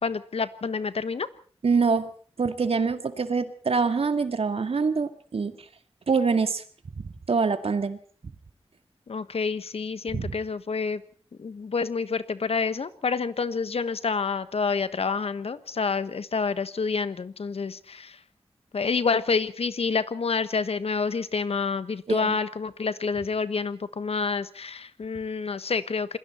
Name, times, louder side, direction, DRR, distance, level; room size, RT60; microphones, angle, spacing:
voice 1, 0.0-1.3 9.1-11.0 11.4-18.2 18.7-26.2, left 5 dB, 75° left, 14 dB, 1.3 m, -28 dB
voice 2, 1.6-2.1 2.4-5.6 6.1-6.6 7.3-8.0 10.1-10.3 22.1-22.4, right 5 dB, 70° right, 9 dB, 2.1 m, -25 dB
27.5 x 21.5 x 4.4 m, 0.43 s
wide cardioid pair, 70°, 10 cm